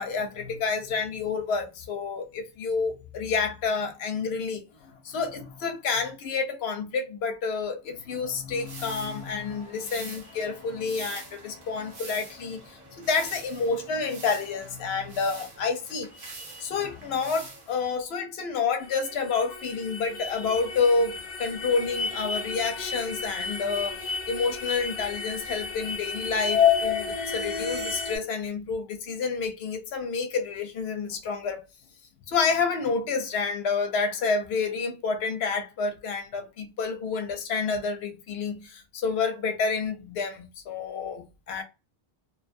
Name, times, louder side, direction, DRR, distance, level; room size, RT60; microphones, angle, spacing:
voice 1, 0.0-16.1 16.6-31.7 32.3-41.6, left 5 dB, 85° left, 0.8 m, -29 dB
sound 1, 8.6-17.9, right 3 dB, 60° right, 0.9 m, -45 dB
sound 2, 18.8-28.2, left 6 dB, 50° left, 0.7 m, -30 dB
2.6 x 2.3 x 2.5 m
omnidirectional pair, 1.0 m